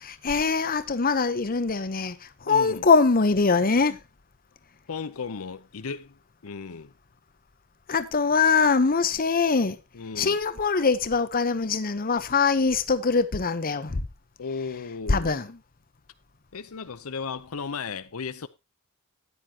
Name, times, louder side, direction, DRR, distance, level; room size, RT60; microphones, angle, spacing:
voice 1, 0.0-4.0 7.9-9.8 10.2-14.0 15.1-15.6, left 4 dB, 40° left, 0.9 m, -23 dB
voice 2, 2.4-2.9 4.9-6.2 6.4-6.9 9.9-10.4 14.4-15.4 16.5-18.5, left 5 dB, 80° left, 0.7 m, -35 dB
13.5 x 9.7 x 2.9 m
head